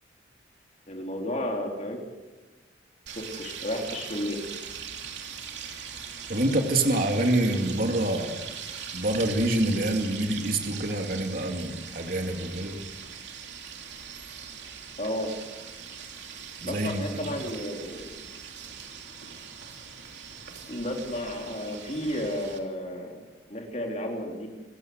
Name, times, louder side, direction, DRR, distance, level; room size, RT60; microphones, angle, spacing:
voice 1, 0.9-2.0 3.1-4.4 15.0-15.3 16.6-18.1 20.7-23.2 23.5-24.5, left 1 dB, 40° left, 1 dB, 4.0 m, -32 dB
sound 1, 3.1-22.6, right 7 dB, 70° right, 3.0 m, -41 dB
voice 2, 6.3-8.3 8.9-12.8 16.6-17.4, right 1 dB, 50° right, 3 dB, 2.6 m, -26 dB
28.0 x 15.5 x 8.0 m, 1.2 s
head